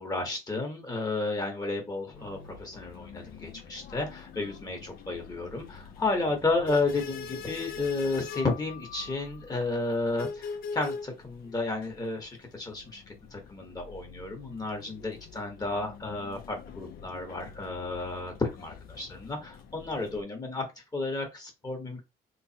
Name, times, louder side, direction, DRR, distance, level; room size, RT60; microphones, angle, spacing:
voice 1, 0.0-13.0 13.3-20.6 20.9-22.0, left 3 dB, 20° left, 3 dB, 1.2 m, -32 dB
sound 1, 2.1-20.2, left 5 dB, 60° left, 0.7 m, -44 dB
3.4 x 3.1 x 2.8 m, 0.23 s
cardioid pair, 110°, 17 cm